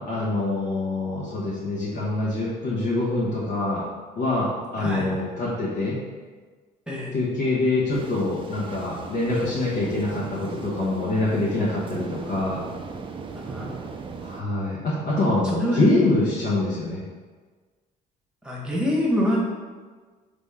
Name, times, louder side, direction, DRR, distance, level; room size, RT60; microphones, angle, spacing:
voice 1, 0.0-3.8 4.1-6.0 7.1-12.6 14.2-17.0, left 2 dB, 70° left, -8 dB, 1.1 m, -25 dB
voice 2, 4.8-5.1 6.9-7.1 13.5-13.7 15.5-15.9 18.4-19.4, equal, 5° right, -5 dB, 1.2 m, -25 dB
sound 1, 7.9-14.4, right 4 dB, 30° right, 0.4 m, -38 dB
4.0 x 3.5 x 3.5 m, 1.4 s
cardioid pair, 110°, 17 cm